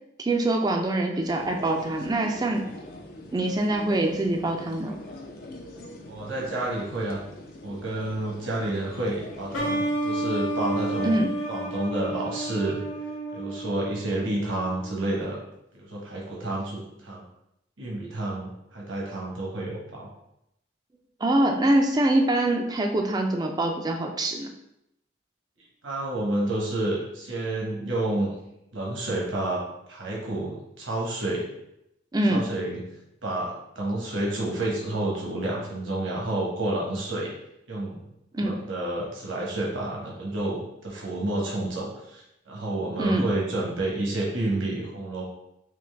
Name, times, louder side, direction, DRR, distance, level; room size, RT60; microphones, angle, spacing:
voice 1, 0.2-2.7 3.3-5.0 11.0-11.3 21.2-24.5 32.1-32.4 38.3-38.6 43.0-43.3, right 1 dB, 20° right, 3 dB, 0.4 m, -24 dB
sound 1, 1.2-9.8, left 1 dB, 50° left, 0.5 m, -43 dB
voice 2, 6.1-7.2 7.6-11.2 11.5-12.8 13.3-15.4 15.7-17.2 17.8-20.1 25.8-28.4 28.7-29.6 29.9-31.5 32.3-32.8 33.2-37.3 37.7-38.0 38.4-45.2, right 2 dB, 75° right, -3 dB, 1.1 m, -29 dB
sound 2, 9.5-15.0, right 1 dB, 80° left, 0.9 m, -31 dB
3.8 x 2.9 x 3.3 m, 0.83 s
head